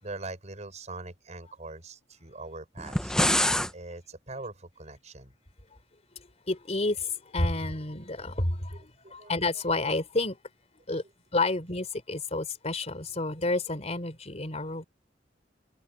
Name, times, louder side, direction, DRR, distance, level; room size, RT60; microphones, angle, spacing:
voice 1, 0.0-3.1 3.7-5.3 8.7-9.3, right 2 dB, 40° right, 6.2 m, -42 dB
sound 1, 2.8-3.7, left 1 dB, 5° left, 0.9 m, -25 dB
voice 2, 6.5-10.4 10.9-11.0 11.3-14.8, left 2 dB, 40° left, 4.0 m, -30 dB
head